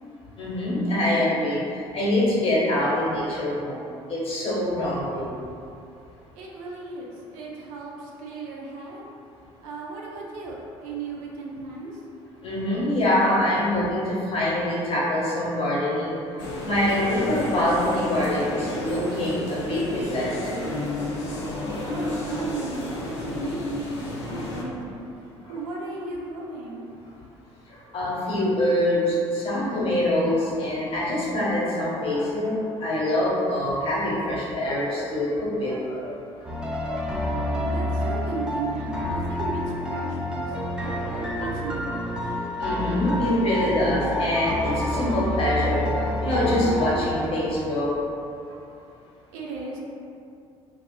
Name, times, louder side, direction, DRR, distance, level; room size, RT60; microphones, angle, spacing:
voice 1, 0.4-1.6 1.9-3.8 4.1-5.3 12.4-20.6 27.9-36.1 36.8-37.0 40.5-41.1 41.4-41.5 41.9-42.0 42.2-42.3 42.6-48.0, left 1 dB, 40° left, -7 dB, 1.0 m, -25 dB
voice 2, 6.3-9.1 9.6-12.0 21.8-25.1 25.5-26.9 37.6-42.4 49.3-49.8, right 3 dB, 65° right, -2 dB, 0.4 m, -36 dB
sound 1, 16.4-24.6, left 1 dB, 70° left, 0.4 m, -31 dB
sound 2, 36.4-47.3, left 1 dB, 5° right, 0.4 m, -28 dB
2.6 x 2.3 x 2.3 m, 2.6 s
figure-of-eight pair, 55°, 15 cm